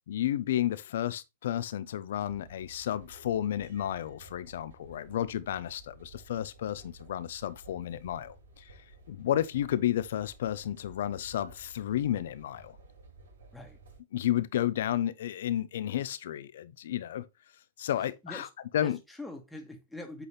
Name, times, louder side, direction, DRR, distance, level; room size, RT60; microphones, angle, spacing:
voice 1, 0.1-8.7 9.1-12.8 14.1-17.2 17.8-18.5 18.7-19.0, left 11 dB, 70° left, 0.7 m, -32 dB
sound 1, 2.1-14.0, right 2 dB, 80° right, 4.8 m, -54 dB
voice 2, 18.0-18.5 18.8-20.3, left 1 dB, 5° left, 1.5 m, -44 dB
8.2 x 4.1 x 3.2 m
hypercardioid pair, 125°, 0 cm